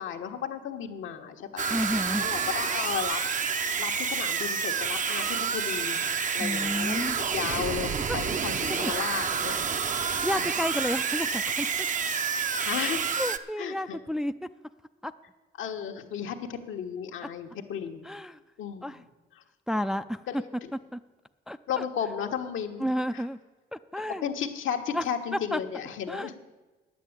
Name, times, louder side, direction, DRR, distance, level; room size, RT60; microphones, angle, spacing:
voice 1, 0.0-1.8 2.2-3.2 3.8-6.0 6.3-9.6 10.3-10.5 12.7-13.0 13.6-14.0 15.6-18.1 18.6-19.0 20.3-20.7 21.7-23.2 24.2-26.4, left 8 dB, 80° left, 4 dB, 1.2 m, -34 dB
sound 1, 1.6-13.4, right 6 dB, 40° right, 0.7 m, -29 dB
voice 2, 1.7-2.3 6.4-7.2 8.7-8.9 10.2-11.7 13.2-14.3 15.0-15.1 17.2-17.3 18.0-18.4 18.8-19.0 19.7-20.4 20.9-21.0 21.5-21.8 22.8-23.4 23.7-24.2 24.9-25.0 25.5-25.6 26.1-26.4, equal, 5° right, 10 dB, 0.4 m, -31 dB
9.8 x 8.4 x 8.7 m, 1.2 s
cardioid pair, 90°, 20 cm